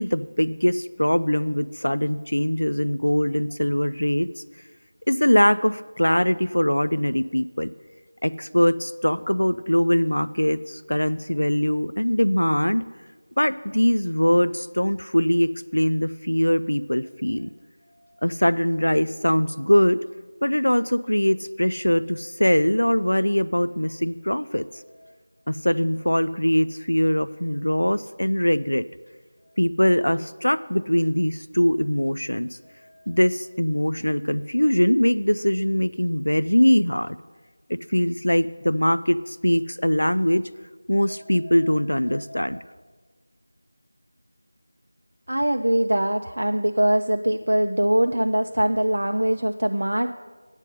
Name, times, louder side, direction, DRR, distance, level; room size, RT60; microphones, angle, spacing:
voice 1, 0.0-4.3 5.1-7.7 8.2-12.8 13.4-17.5 18.2-20.0 20.4-24.6 25.5-28.8 29.6-32.6 33.1-37.2 37.7-40.4 40.9-42.6, equal, 80° left, 14 dB, 0.3 m, -22 dB
voice 2, 45.3-50.1, right 1 dB, 70° right, 5 dB, 0.4 m, -22 dB
8.9 x 5.3 x 7.7 m, 1.4 s
figure-of-eight pair, 170°, 0 cm